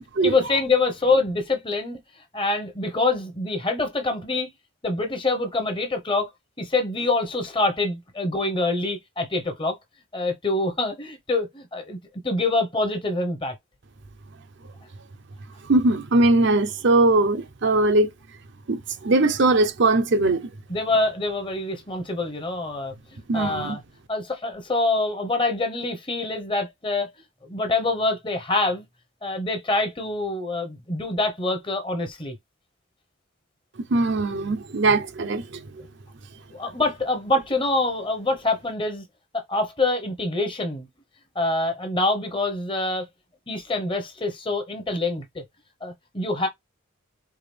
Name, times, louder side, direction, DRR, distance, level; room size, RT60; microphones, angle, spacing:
voice 1, 0.2-2.0 2.3-4.5 4.8-6.3 6.6-9.8 10.1-12.0 12.2-13.5 20.7-22.9 23.3-23.8 24.1-27.1 27.4-28.9 29.2-32.4 36.5-39.0 39.3-40.9 41.3-43.1 43.5-45.4 45.8-46.5, left 2 dB, 25° left, 0.9 m, -25 dB
voice 2, 15.7-18.1 18.7-20.5 23.3-23.8 33.9-35.8, right 2 dB, 55° right, 0.6 m, -20 dB
4.7 x 2.4 x 3.3 m
head